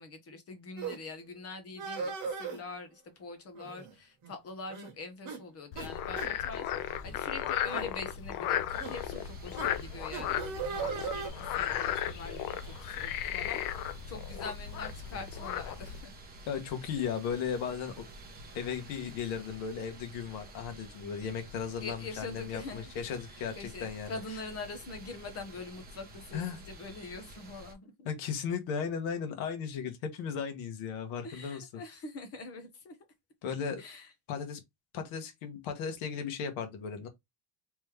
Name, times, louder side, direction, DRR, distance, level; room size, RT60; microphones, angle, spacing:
voice 1, 0.0-16.1 21.8-22.9 23.6-27.9 31.2-33.0 33.8-34.1, left 3 dB, 30° left, 0.9 m, -44 dB
sound 1, 0.8-1.0 1.8-2.6 3.6-3.9 4.2-4.3 4.7-4.9 5.3-5.4 5.8-5.9 6.2-6.3 7.0-7.2 7.7-7.9 8.8-8.9 9.6-9.7 10.1-11.3, right 5 dB, 35° right, 1.3 m, -37 dB
Frog, 5.7-16.0, left 10 dB, 45° left, 0.4 m, -35 dB
sound 2, 8.7-27.7, right 1 dB, 20° right, 0.8 m, -50 dB
voice 2, 16.5-17.9 18.5-24.2 26.3-26.6 28.0-31.8 33.4-33.8 34.3-34.6 34.9-37.1, left 7 dB, 70° left, 1.4 m, -36 dB
3.5 x 3.1 x 3.3 m
cardioid pair, 175°, 50 cm